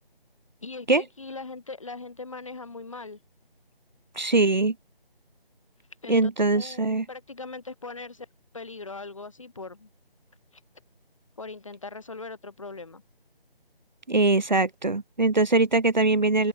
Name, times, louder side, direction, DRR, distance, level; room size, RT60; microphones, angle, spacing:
voice 1, 0.6-3.2 6.0-8.3 8.5-9.9 11.4-13.0, left 3 dB, 35° left, 6.8 m, -40 dB
voice 2, 4.1-4.7 6.1-7.0 14.1-16.5, right 3 dB, 50° right, 1.4 m, -22 dB
open air
figure-of-eight pair, 180°, 30 cm